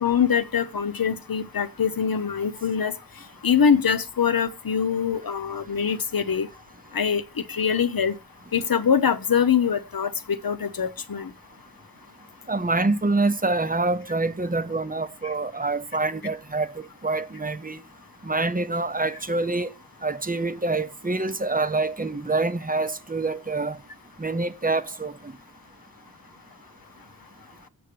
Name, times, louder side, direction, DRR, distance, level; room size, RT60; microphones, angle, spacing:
voice 1, 0.0-2.9 3.4-6.5 6.9-8.2 8.5-11.3, left 7 dB, 70° left, 0.8 m, -23 dB
voice 2, 12.5-17.8 18.2-19.7 20.0-23.8 24.2-25.3, right 3 dB, 25° right, 0.7 m, -26 dB
7.7 x 6.6 x 6.8 m
wide cardioid pair, 65°, 37 cm